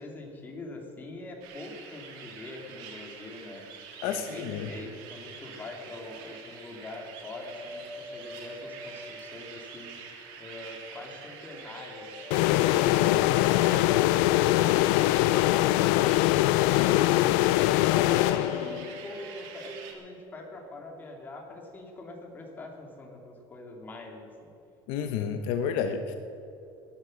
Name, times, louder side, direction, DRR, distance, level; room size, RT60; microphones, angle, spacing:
voice 1, 0.0-3.6 4.0-9.9 10.4-13.3 18.0-24.5, left 2 dB, 20° left, 1 dB, 2.6 m, -43 dB
sound 1, 1.4-19.9, right 6 dB, 85° right, 3.0 m, -46 dB
voice 2, 4.0-4.7 16.8-17.0 24.9-26.2, left 7 dB, 65° left, 7 dB, 1.0 m, -30 dB
sound 2, 7.5-10.1 11.5-15.4 16.8-19.9, left 2 dB, 5° right, 2.2 m, -44 dB
sound 3, 12.3-19.0, left 17 dB, 85° left, 0.4 m, -23 dB
18.5 x 11.5 x 6.5 m, 2.9 s
cardioid pair, 165°, 10 cm